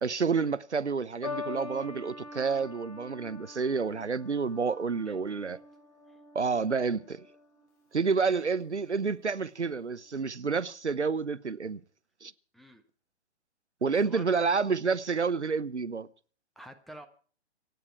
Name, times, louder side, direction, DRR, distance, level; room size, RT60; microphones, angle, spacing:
voice 1, 0.0-5.6 6.3-7.3 7.9-11.8 12.2-12.3 13.8-16.1, right 5 dB, 80° right, 1.0 m, -29 dB
sound 1, 1.2-7.7 8.6-9.0, left 3 dB, 30° left, 5.4 m, -44 dB
voice 2, 5.0-5.6 6.1-6.2 12.5-12.8 14.0-14.3 16.5-17.1, right 1 dB, ahead, 1.2 m, -49 dB
26.5 x 9.8 x 4.5 m
figure-of-eight pair, 125°, 34 cm